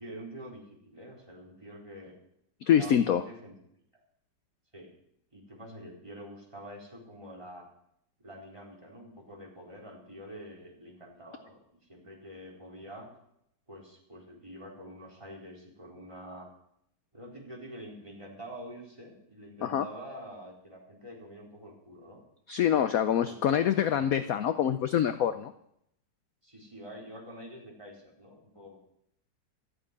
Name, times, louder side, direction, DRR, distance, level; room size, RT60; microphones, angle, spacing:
voice 1, 0.0-2.2 2.7-3.5 4.7-4.9 5.3-7.7 8.2-11.6 11.9-13.1 13.7-16.5 17.1-22.2 23.0-23.7 26.4-28.8, equal, 15° right, -1 dB, 4.3 m, -46 dB
voice 2, 2.6-3.2 19.6-19.9 22.5-25.5, left 9 dB, 65° left, 11 dB, 1.0 m, -25 dB
14.5 x 8.1 x 9.7 m, 0.75 s
omnidirectional pair, 1.9 m